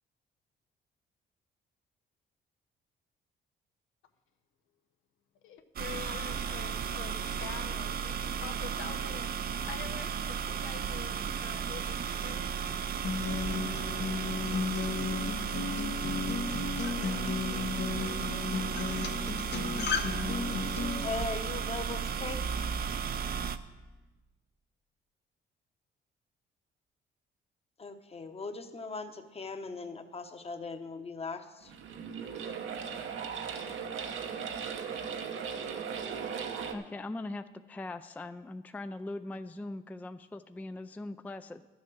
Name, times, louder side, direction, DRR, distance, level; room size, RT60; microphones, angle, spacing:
voice 1, 5.4-12.0 12.2-12.7, left 8 dB, 90° left, 6 dB, 0.9 m, -46 dB
sound 1, 5.8-23.6, right 7 dB, 50° right, 0.6 m, -34 dB
Acoustic guitar, 13.0-21.0, left 5 dB, 60° left, 1.0 m, -34 dB
voice 2, 21.0-22.4 27.8-31.7, left 3 dB, 30° left, 8 dB, 1.0 m, -39 dB
sound 2, 31.6-36.7, right 6 dB, 75° right, 1.0 m, -37 dB
voice 3, 36.7-41.6, left 2 dB, 10° left, 10 dB, 0.4 m, -41 dB
11.5 x 7.4 x 6.2 m, 1.2 s
cardioid pair, 90°, 20 cm